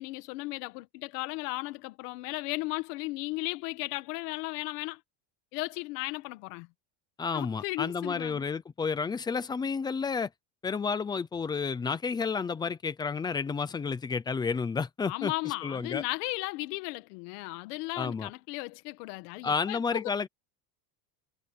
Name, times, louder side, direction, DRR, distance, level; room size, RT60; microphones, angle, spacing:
voice 1, 0.0-5.0 5.5-6.7 7.3-8.5 15.1-20.1, left 22 dB, 80° left, 1.8 m, -35 dB
voice 2, 7.2-10.3 10.6-15.3 15.6-16.0 18.0-18.3 19.4-20.3, left 5 dB, 10° left, 0.4 m, -31 dB
cardioid pair, 170°, 47 cm